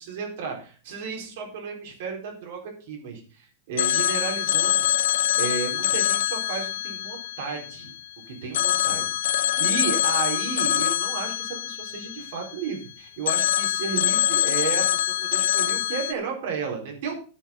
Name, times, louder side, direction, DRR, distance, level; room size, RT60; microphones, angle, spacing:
voice 1, 0.0-7.9 8.3-17.2, right 6 dB, 60° right, 0 dB, 4.3 m, -33 dB
Telephone, 3.8-8.1 8.5-12.8 13.3-16.1, left 12 dB, 80° left, 0.5 m, -24 dB
10.5 x 7.8 x 5.3 m, 0.39 s
supercardioid pair, 165°, 0 cm